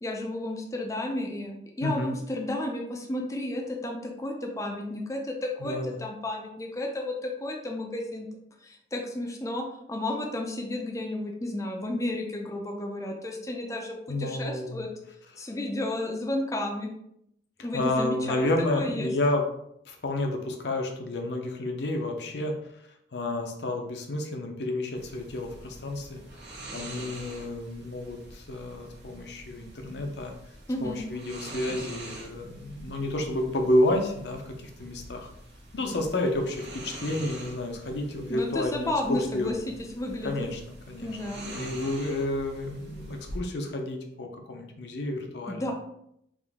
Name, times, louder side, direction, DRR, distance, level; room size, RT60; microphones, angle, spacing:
voice 1, 0.0-8.3 8.6-14.9 15.4-16.9 17.6-19.1 30.7-31.0 38.3-40.5 41.0-41.5 45.5-45.7, left 1 dB, 20° left, 1 dB, 0.4 m, -32 dB
voice 2, 1.8-2.2 5.6-6.0 14.1-14.9 15.4-15.5 17.7-19.4 19.9-22.5 23.1-26.2 26.7-30.3 30.8-35.3 35.7-39.5 40.2-45.7, left 1 dB, 70° left, 3 dB, 0.6 m, -30 dB
sound 1, 25.0-43.4, right 1 dB, 75° right, 1.1 m, -45 dB
3.6 x 2.6 x 3.5 m, 0.76 s
head